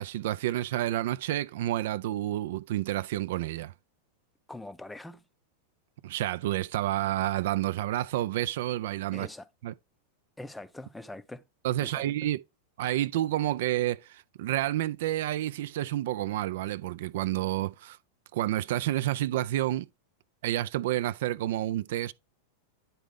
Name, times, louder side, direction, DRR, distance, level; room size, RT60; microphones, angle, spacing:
voice 1, 0.0-3.7 6.0-9.3 9.6-9.7 11.6-12.4 12.8-18.0 18.3-19.9 20.4-22.1, right 14 dB, 55° right, 0.3 m, -29 dB
voice 2, 4.5-5.2 9.1-9.5 10.4-11.4 11.8-12.1, left 2 dB, 5° left, 0.4 m, -43 dB
10.0 x 4.0 x 3.4 m
figure-of-eight pair, 90°, 0 cm